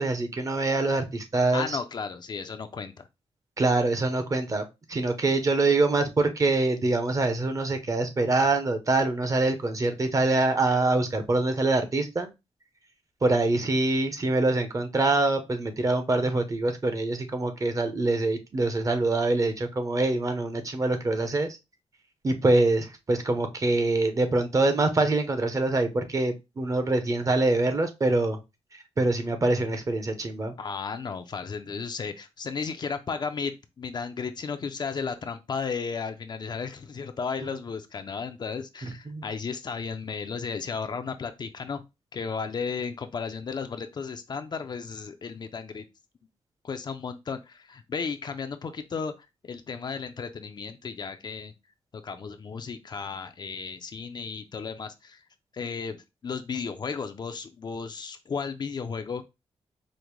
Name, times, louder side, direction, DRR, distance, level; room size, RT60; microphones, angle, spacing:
voice 1, 0.0-1.8 3.6-12.3 13.2-21.6 22.2-28.4 29.0-30.5 37.4-37.5 39.1-39.2, right 2 dB, 30° right, 0.7 m, -25 dB
voice 2, 1.5-3.0 30.6-41.8 42.1-45.9 46.6-51.5 52.0-55.3 55.5-59.2, left 5 dB, 45° left, 0.4 m, -34 dB
5.0 x 2.1 x 3.0 m
wide cardioid pair, 120°, 11 cm